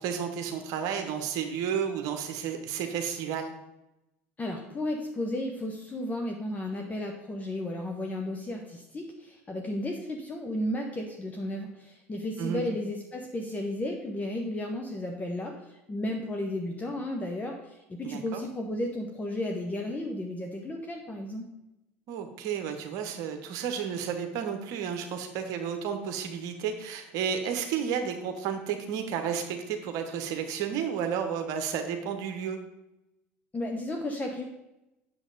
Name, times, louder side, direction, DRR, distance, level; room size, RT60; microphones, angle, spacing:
voice 1, 0.0-3.5 12.4-12.6 18.0-18.4 22.1-32.6, right 7 dB, 60° right, 6 dB, 1.1 m, -32 dB
voice 2, 4.4-21.5 33.5-34.4, left 1 dB, 20° left, 2 dB, 1.1 m, -33 dB
8.1 x 7.0 x 4.0 m, 0.93 s
hypercardioid pair, 70°, 7 cm